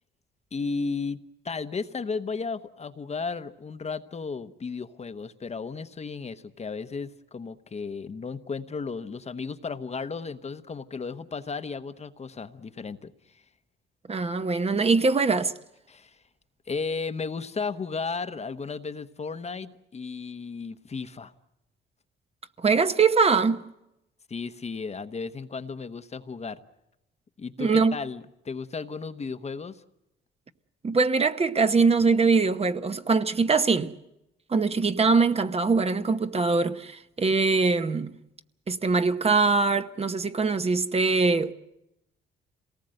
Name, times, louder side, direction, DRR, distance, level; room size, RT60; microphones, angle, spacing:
voice 1, 0.5-1.2 1.4-13.4 15.9-16.2 16.7-21.3 24.3-26.6 27.4-29.8, left 4 dB, 35° left, 1.0 m, -34 dB
voice 2, 14.1-15.5 22.6-23.6 27.6-28.0 30.8-33.9 34.5-38.1 38.7-41.5, right 4 dB, 30° right, 0.9 m, -22 dB
27.0 x 18.5 x 7.8 m
cardioid pair, 90°, 20 cm